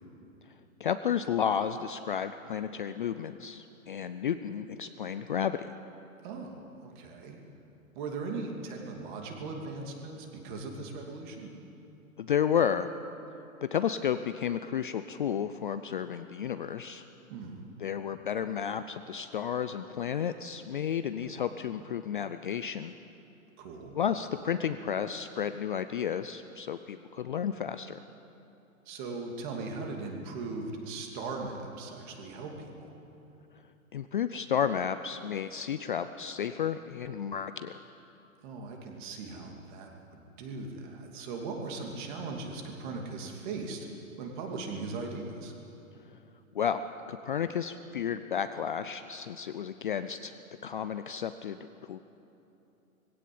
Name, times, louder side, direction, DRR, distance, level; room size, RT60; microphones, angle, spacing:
voice 1, 0.8-5.7 12.2-12.9 13.6-17.0 17.8-22.9 23.9-28.0 33.9-37.7 46.5-52.0, left 8 dB, 40° left, 10 dB, 0.4 m, -32 dB
voice 2, 6.2-7.4 7.9-11.5 17.3-17.7 21.2-21.4 23.6-23.9 28.9-32.9 38.4-43.9 44.2-45.5, right 3 dB, 35° right, 2 dB, 2.7 m, -39 dB
20.0 x 16.5 x 8.6 m, 2.9 s
hypercardioid pair, 160°, 42 cm